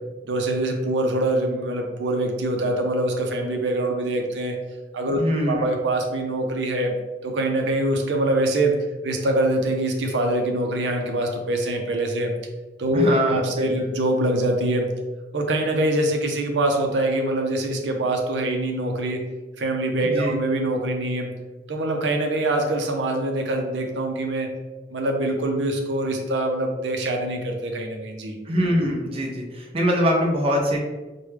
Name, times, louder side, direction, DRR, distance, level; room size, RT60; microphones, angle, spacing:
voice 1, 0.2-4.5 4.9-5.2 5.5-6.9 7.2-8.8 9.0-12.3 12.8-14.9 15.3-19.2 19.6-21.3 21.7-24.5 24.9-28.4, right 1 dB, 85° right, 2 dB, 0.6 m, -24 dB
voice 2, 5.2-5.6 12.9-14.0 20.0-20.3 28.4-30.8, equal, 35° right, -1 dB, 0.6 m, -23 dB
4.8 x 2.2 x 3.2 m, 1.2 s
head